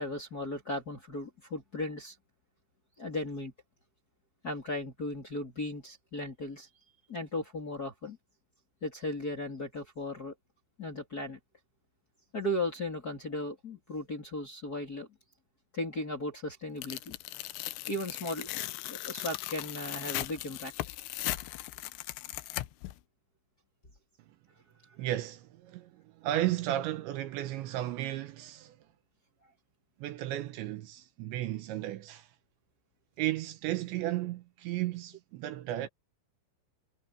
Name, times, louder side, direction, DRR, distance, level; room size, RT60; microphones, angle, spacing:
voice 1, 0.0-2.1 3.0-3.5 4.4-6.7 7.1-8.2 8.8-10.3 10.8-11.4 12.3-15.1 15.7-17.1 17.9-18.5 18.9-20.7, left 1 dB, 25° left, 2.4 m, -36 dB
Tearing, 16.8-22.9, left 17 dB, 80° left, 2.7 m, -38 dB
voice 2, 25.0-28.8 30.0-32.3 33.2-35.9, right 14 dB, 75° right, 3.1 m, -34 dB
omnidirectional pair, 5.6 m